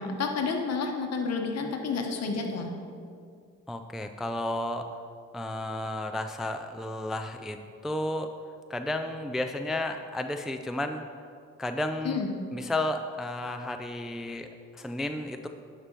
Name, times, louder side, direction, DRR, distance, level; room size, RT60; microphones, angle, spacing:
voice 1, 0.0-2.7 12.0-12.3, left 4 dB, 55° left, 4 dB, 1.1 m, -30 dB
voice 2, 3.7-4.9 5.3-7.6 7.8-8.3 8.7-11.0 11.6-12.2 12.5-15.5, left 1 dB, ahead, 6 dB, 0.3 m, -32 dB
11.0 x 5.2 x 4.5 m, 2.3 s
cardioid pair, 90°, 30 cm